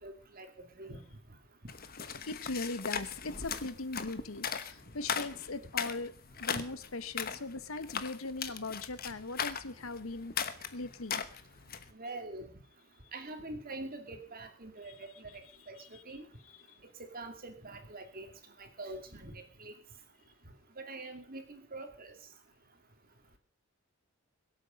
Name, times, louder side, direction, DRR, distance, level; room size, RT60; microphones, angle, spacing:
voice 1, 0.0-0.5 0.8-1.0 11.9-12.5 13.1-15.4 15.7-16.3 17.0-18.3 18.6-19.7 20.8-22.1, right 2 dB, 45° right, 6 dB, 2.5 m, -44 dB
sound 1, 1.7-11.9, left 7 dB, 45° left, 1.1 m, -38 dB
voice 2, 2.3-6.1 6.4-10.3 10.7-11.2 15.8-16.0 16.7-16.8, left 3 dB, 80° left, 14 dB, 1.1 m, -39 dB
23.0 x 8.3 x 5.2 m, 0.39 s
head